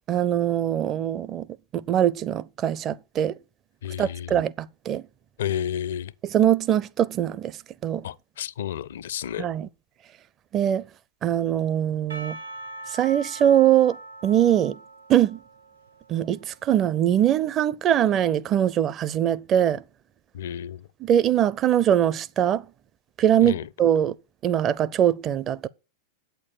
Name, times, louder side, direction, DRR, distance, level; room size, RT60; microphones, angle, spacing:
voice 1, 0.1-1.5 1.7-3.3 4.0-5.0 6.2-7.6 7.8-8.0 9.4-9.7 10.5-10.9 11.2-12.4 12.9-14.0 14.2-14.8 15.1-15.4 16.1-19.8 21.0-22.6 23.2-24.1 24.4-25.7, right 10 dB, 30° right, 0.5 m, -22 dB
voice 2, 3.8-4.4 5.4-6.1 8.0-9.5 20.3-20.9 23.4-23.7, left 10 dB, 60° left, 0.5 m, -31 dB
Percussion / Church bell, 12.1-17.3, right 1 dB, 80° right, 3.4 m, -42 dB
8.6 x 6.9 x 6.2 m
figure-of-eight pair, 90°, 0 cm